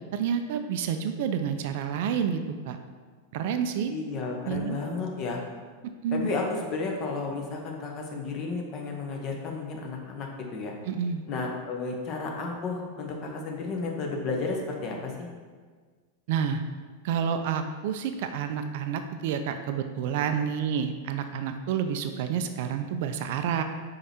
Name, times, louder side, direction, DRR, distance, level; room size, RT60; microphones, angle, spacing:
voice 1, 0.1-2.8 3.3-3.9 4.4-4.8 6.0-6.3 10.9-11.2 16.3-16.6 17.0-23.6, right 7 dB, 50° right, 8 dB, 0.4 m, -29 dB
voice 2, 3.9-5.4 6.1-10.7 11.3-15.3, left 3 dB, 35° left, 1 dB, 1.1 m, -32 dB
5.1 x 4.6 x 4.4 m, 1.5 s
figure-of-eight pair, 90°, 0 cm